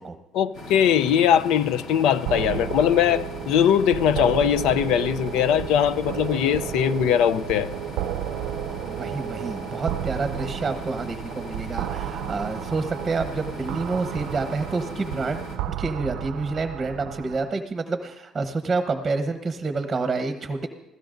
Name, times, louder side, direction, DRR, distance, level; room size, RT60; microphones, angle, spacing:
voice 1, 0.3-7.7, left 9 dB, 80° left, 0.5 m, -21 dB
sound 1, 0.5-15.6, left 1 dB, 60° left, 2.7 m, -39 dB
sound 2, 2.3-17.5, right 11 dB, 80° right, 0.5 m, -33 dB
voice 2, 8.8-15.4 15.7-20.7, right 3 dB, 20° right, 1.0 m, -28 dB
26.0 x 16.0 x 2.6 m
cardioid pair, 115°, 0 cm